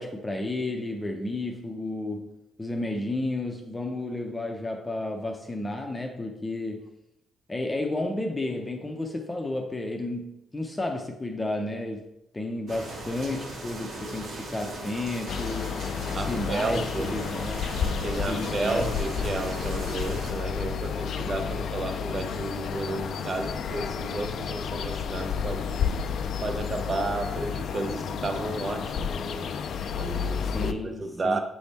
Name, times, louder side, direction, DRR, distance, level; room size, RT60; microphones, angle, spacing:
voice 1, 0.0-2.3 2.6-6.9 7.5-12.1 12.3-15.8 16.1-17.7 18.3-19.0 30.5-31.4, left 2 dB, 15° left, 0.7 m, -32 dB
sound 1, 12.7-20.3, right 2 dB, 70° right, 1.8 m, -38 dB
sound 2, 15.3-30.7, left 7 dB, 65° left, 0.4 m, -31 dB
voice 2, 16.1-17.2 18.0-26.0 26.4-29.6 29.9-31.4, right 2 dB, 40° right, 0.7 m, -32 dB
7.0 x 3.4 x 4.2 m
cardioid pair, 90°, 0 cm